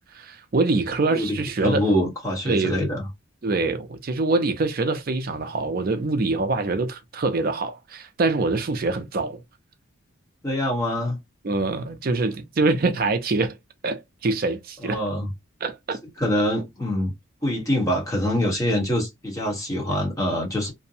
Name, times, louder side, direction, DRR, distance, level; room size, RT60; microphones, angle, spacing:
voice 1, 0.1-1.9 2.5-2.9 3.4-9.4 11.4-13.6 13.8-15.0 15.6-16.0, right 3 dB, 45° right, 0.4 m, -24 dB
voice 2, 1.6-3.1 10.4-11.2 14.8-15.3 16.2-17.1 17.4-20.7, left 1 dB, 15° left, 1.0 m, -24 dB
2.6 x 2.1 x 2.5 m
head